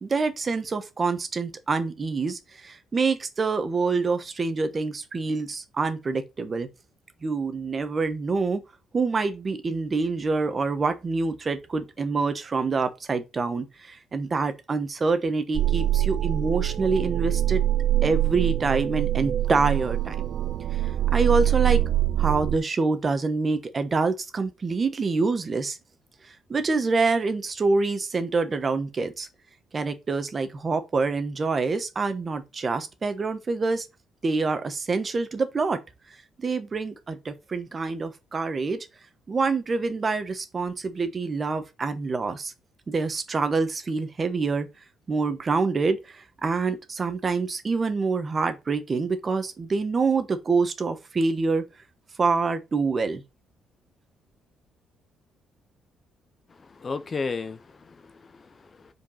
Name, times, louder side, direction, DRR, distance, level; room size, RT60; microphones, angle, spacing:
voice 1, 0.0-6.7 7.2-8.6 8.9-17.6 18.0-20.3 21.1-21.8 22.2-25.8 26.2-29.3 29.7-33.9 34.2-35.8 36.4-38.9 39.3-42.5 42.9-44.7 45.1-51.6 52.2-53.2, right 4 dB, 25° right, 1.1 m, -26 dB
sound 1, 15.5-22.6, right 13 dB, 60° right, 0.4 m, -24 dB
voice 2, 56.6-58.9, left 4 dB, 30° left, 0.5 m, -34 dB
5.1 x 4.6 x 5.6 m
cardioid pair, 150°, 0 cm